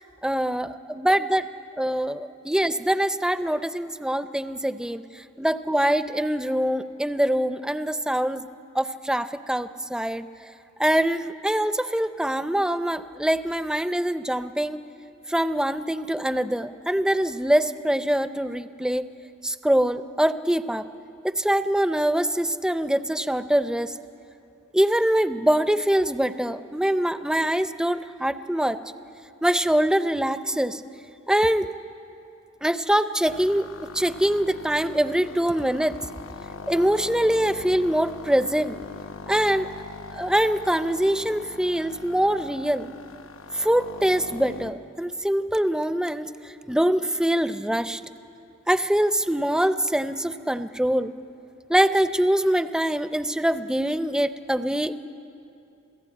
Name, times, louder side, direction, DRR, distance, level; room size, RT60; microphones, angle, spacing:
voice 1, 0.2-1.5 1.8-5.0 5.4-8.4 8.7-10.3 10.8-14.8 15.3-19.1 19.4-20.9 21.2-23.9 24.7-28.8 29.4-30.8 31.3-31.7 32.6-36.0 36.7-38.8 39.3-39.7 40.1-42.9 43.5-46.3 46.7-48.0 48.7-51.1 51.7-54.9, right 1 dB, 5° right, 12 dB, 0.5 m, -24 dB
sound 1, 33.3-44.7, left 4 dB, 80° left, 0.8 m, -41 dB
28.5 x 16.0 x 8.6 m, 2.7 s
head